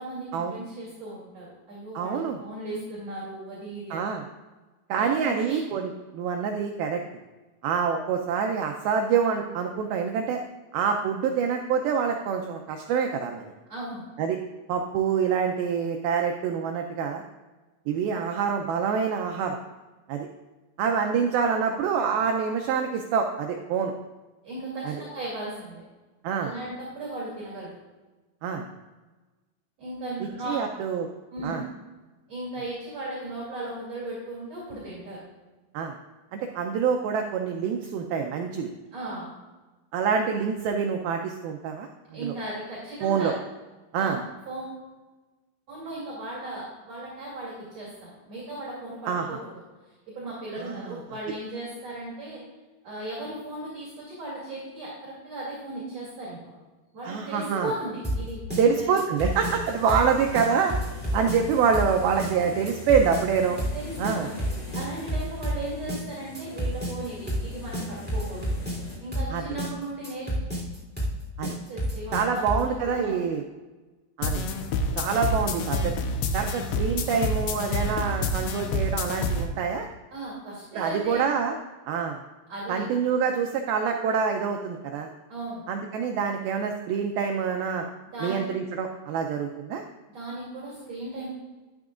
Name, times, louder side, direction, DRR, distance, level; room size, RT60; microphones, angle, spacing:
voice 1, 0.0-4.1 5.0-5.6 13.7-14.0 24.4-25.8 26.4-27.8 29.8-30.6 31.3-31.7 32.3-35.2 38.9-39.3 42.1-43.3 44.0-44.8 45.7-49.5 50.1-52.4 52.8-56.6 56.9-59.0 63.7-68.6 69.0-70.5 71.7-73.2 80.1-81.3 82.5-82.8 85.3-85.6 88.1-88.4 90.1-91.3, right 2 dB, 45° right, -6 dB, 3.2 m, -36 dB
voice 2, 2.0-2.4 3.9-4.2 4.9-7.0 7.6-10.4 10.7-13.4 14.2-14.4 14.7-17.2 17.9-19.6 20.1-20.3 20.8-23.9 24.9-25.0 26.2-26.5 28.4-28.6 30.5-31.1 31.4-31.6 35.7-36.0 36.3-38.7 39.9-41.9 42.2-42.3 43.0-43.3 43.9-44.2 49.1-49.3 50.6-51.0 57.0-57.7 58.6-60.7 61.1-63.6 64.0-64.3 69.3-69.4 71.4-71.6 72.1-73.4 74.2-74.4 75.0-75.9 76.3-79.9 80.7-81.6 81.9-82.2 82.7-85.1 85.7-87.9 88.2-89.8, right 6 dB, 85° right, 3 dB, 2.1 m, -26 dB
sound 1, 58.0-72.7, equal, 5° right, 2.2 m, -30 dB
sound 2, 59.1-69.0, left 1 dB, 40° left, 3.7 m, -43 dB
sound 3, 74.2-79.5, left 2 dB, 85° left, 3.0 m, -28 dB
12.0 x 11.5 x 2.5 m, 1.2 s
omnidirectional pair, 4.9 m